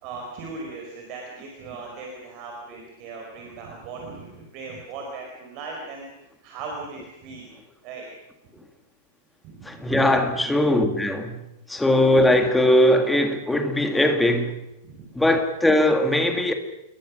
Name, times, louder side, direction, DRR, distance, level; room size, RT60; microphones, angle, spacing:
voice 1, 0.0-7.5 7.8-8.1 9.4-9.9 14.8-15.1, right 3 dB, 30° right, 4.8 m, -38 dB
voice 2, 9.6-11.4 11.7-14.6 15.2-16.5, left 1 dB, 5° left, 1.8 m, -20 dB
27.5 x 22.0 x 6.3 m
supercardioid pair, 175°, 0 cm